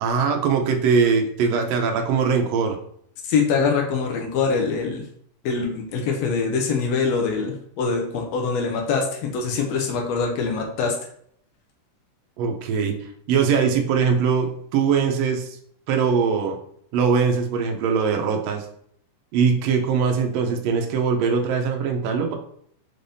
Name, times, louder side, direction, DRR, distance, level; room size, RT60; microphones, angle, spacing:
voice 1, 0.0-2.8 12.4-13.0 13.3-15.6 15.9-16.6 16.9-18.6 19.3-22.3, right 6 dB, 80° right, 3 dB, 1.5 m, -21 dB
voice 2, 3.2-5.0 5.4-10.9, left 5 dB, 85° left, 2 dB, 1.5 m, -24 dB
5.4 x 3.4 x 2.6 m, 0.66 s
omnidirectional pair, 3.7 m